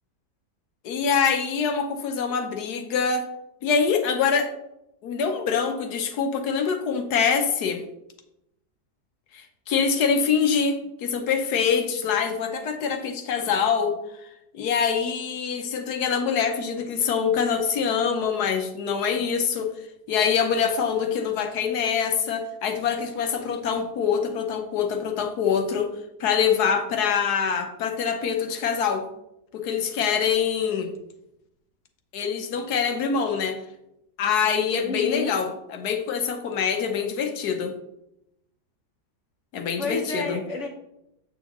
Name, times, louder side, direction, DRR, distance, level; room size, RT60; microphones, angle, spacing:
voice 1, 0.8-3.3 3.6-4.5 5.0-7.8 9.3-14.0 14.5-19.7 20.1-25.9 26.2-29.1 29.5-30.9 32.1-33.6 34.2-37.7 39.5-40.4, left 6 dB, 75° left, 6 dB, 1.4 m, -24 dB
voice 2, 34.8-35.3 39.8-40.7, left 3 dB, 55° left, 3 dB, 0.9 m, -30 dB
8.0 x 6.3 x 3.0 m, 0.84 s
omnidirectional pair, 1.8 m